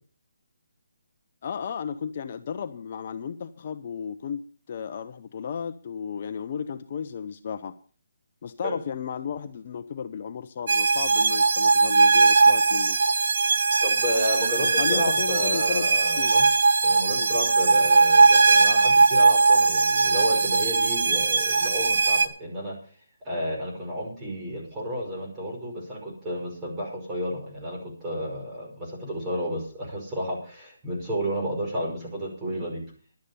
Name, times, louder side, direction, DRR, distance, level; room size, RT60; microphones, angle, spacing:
voice 1, 1.4-7.8 8.4-13.0 14.6-16.3 17.1-17.3, left 7 dB, 45° left, 10 dB, 0.8 m, -34 dB
sound 1, 10.7-22.3, right 4 dB, 60° right, 1.3 m, -20 dB
voice 2, 13.8-16.5 16.8-22.8 23.2-32.8, equal, 15° right, -2 dB, 5.3 m, -31 dB
11.5 x 9.2 x 6.9 m, 0.39 s
hypercardioid pair, 160°, 0 cm